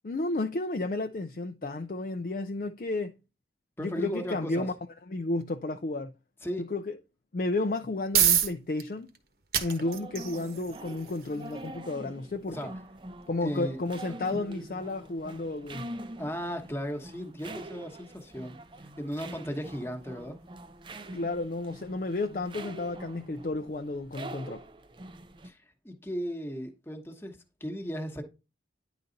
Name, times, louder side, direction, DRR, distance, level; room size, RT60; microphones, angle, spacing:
voice 1, 0.0-3.1 3.8-4.7 5.1-6.1 6.6-6.9 7.3-9.1 9.6-12.7 13.3-15.9 21.1-24.6, left 2 dB, 50° left, 0.4 m, -32 dB
voice 2, 3.8-4.7 6.4-6.7 12.5-12.7 13.4-13.8 14.3-14.4 16.2-18.6 19.0-20.4 25.4-28.2, equal, 15° left, 1.1 m, -36 dB
sound 1, 7.6-22.5, right 9 dB, 55° right, 1.2 m, -35 dB
sound 2, 9.8-25.5, right 1 dB, 25° right, 0.5 m, -44 dB
10.0 x 3.9 x 3.9 m
head